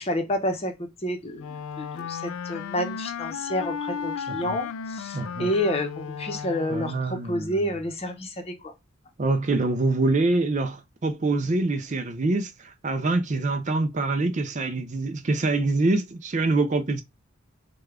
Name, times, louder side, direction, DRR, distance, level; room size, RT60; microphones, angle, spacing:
voice 1, 0.0-8.7, left 1 dB, 30° left, 0.8 m, -29 dB
Wind instrument woodwind instrument, 1.4-7.1, left 7 dB, 75° left, 0.3 m, -34 dB
voice 2, 5.1-5.5 6.7-7.6 9.2-17.0, right 2 dB, 35° right, 0.4 m, -25 dB
6.5 x 2.3 x 3.6 m
head